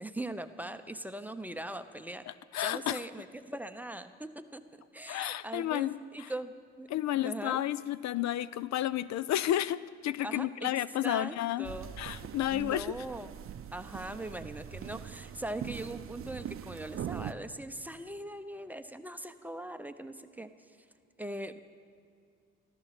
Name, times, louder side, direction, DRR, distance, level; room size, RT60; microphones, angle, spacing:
voice 1, 0.0-2.2 2.6-6.9 7.2-7.6 10.2-10.7 11.0-11.9 12.5-13.4 13.7-20.5 21.2-21.6, right 1 dB, 5° right, 9 dB, 0.7 m, -41 dB
voice 2, 2.3-3.0 5.1-6.3 6.9-11.7 12.0-12.9, left 13 dB, 65° left, 18 dB, 0.4 m, -32 dB
sound 1, 11.6-17.3, right 9 dB, 45° right, 0.6 m, -42 dB
14.0 x 13.5 x 5.9 m, 2.3 s
cardioid pair, 90°, 30 cm